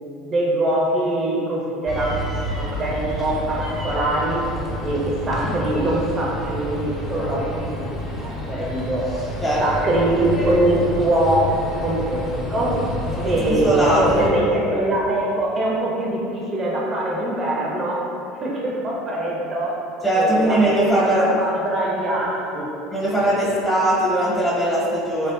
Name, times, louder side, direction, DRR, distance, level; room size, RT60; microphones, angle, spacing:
voice 1, 0.2-4.4 4.8-7.8 8.2-9.1 9.6-11.5 11.8-12.8 13.2-18.0 18.4-19.8 20.1-20.9 21.4-22.7 23.2-23.4, right 1 dB, 35° right, -3 dB, 0.5 m, -23 dB
sound 1, 1.9-14.3, left 1 dB, 40° left, 0.7 m, -29 dB
voice 2, 13.2-14.3 20.0-21.3 22.9-25.3, right 1 dB, 10° left, -8 dB, 0.8 m, -20 dB
3.3 x 2.4 x 2.3 m, 2.7 s
hypercardioid pair, 85°, 0 cm